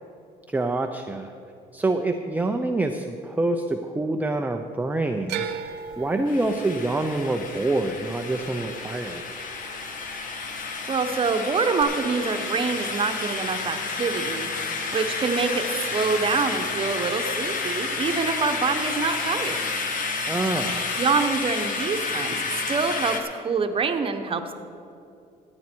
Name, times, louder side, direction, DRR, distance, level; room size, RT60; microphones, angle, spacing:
voice 1, 0.5-1.3 1.7-5.5 6.0-9.2 20.3-20.9, right 2 dB, 10° right, 4 dB, 0.5 m, -26 dB
sound 1, 5.3-9.5 9.8-10.5 11.8-11.9, right 7 dB, 80° right, 0.8 m, -37 dB
sound 2, 6.3-23.2, left 4 dB, 50° left, 1.4 m, -30 dB
voice 2, 10.9-14.5 14.9-19.6 21.0-22.4 22.7-24.5, right 5 dB, 30° right, 6 dB, 1.0 m, -26 dB
15.0 x 9.7 x 4.5 m, 2.6 s
cardioid pair, 110°, 17 cm